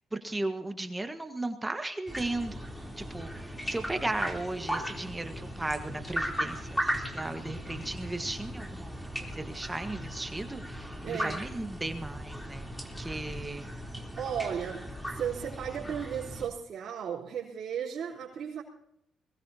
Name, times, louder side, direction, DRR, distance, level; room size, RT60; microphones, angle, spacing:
voice 1, 0.1-2.6 3.0-12.7 13.0-13.6, right 2 dB, 15° right, 6 dB, 1.5 m, -36 dB
sound 1, 2.1-16.5, equal, 5° left, 3.5 m, -37 dB
voice 2, 11.0-11.4 13.2-13.4 14.2-18.6, right 8 dB, 60° right, -6 dB, 3.9 m, -35 dB
22.5 x 18.5 x 2.9 m, 0.75 s
cardioid pair, 90°, 0 cm